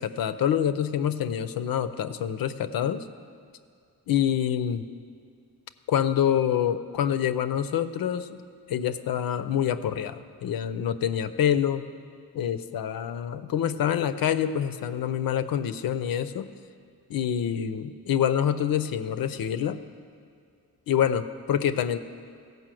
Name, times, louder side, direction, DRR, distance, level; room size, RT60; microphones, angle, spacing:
voice 1, 0.0-3.1 4.1-4.9 5.9-8.4 8.7-11.8 12.3-16.5 17.1-19.8 20.9-22.0, left 9 dB, 75° left, 12 dB, 0.6 m, -26 dB
16.0 x 5.4 x 7.6 m, 2.3 s
wide cardioid pair, 130°, 35 cm